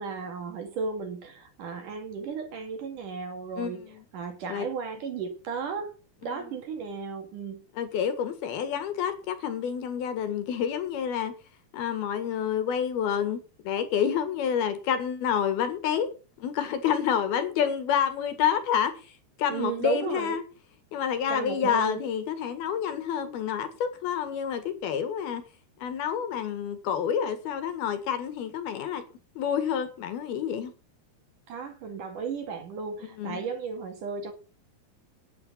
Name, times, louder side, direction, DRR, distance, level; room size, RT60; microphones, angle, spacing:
voice 1, 0.0-3.8 4.1-5.9 6.2-7.6 19.5-20.4 21.3-22.0 31.5-34.3, right 5 dB, 55° right, 3.3 m, -34 dB
voice 2, 3.6-4.1 4.5-4.7 7.8-11.3 11.7-16.1 16.4-18.9 19.4-20.4 20.9-25.4 25.8-29.0 29.4-30.7 33.2-33.4, left 8 dB, 65° left, 3.5 m, -28 dB
10.5 x 9.9 x 7.2 m
omnidirectional pair, 4.9 m